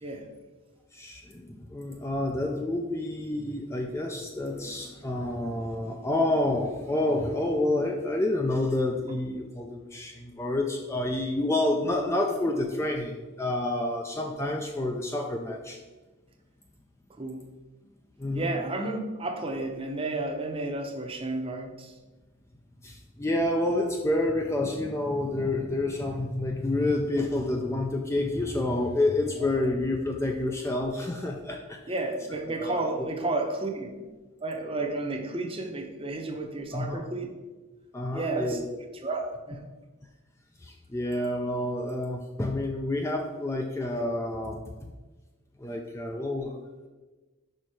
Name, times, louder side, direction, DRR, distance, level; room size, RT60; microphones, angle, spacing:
voice 1, 0.9-15.8 18.2-18.5 22.8-31.8 32.6-32.7 33.0-33.1 36.7-37.0 37.9-38.6 40.6-44.6 45.6-46.6, left 1 dB, 15° left, 2 dB, 0.4 m, -29 dB
voice 2, 18.3-21.9 29.4-29.7 31.9-33.9 34.4-37.3 38.1-38.6 39.0-39.7, right 2 dB, 25° right, 3 dB, 0.7 m, -32 dB
5.4 x 4.4 x 4.7 m, 1.2 s
head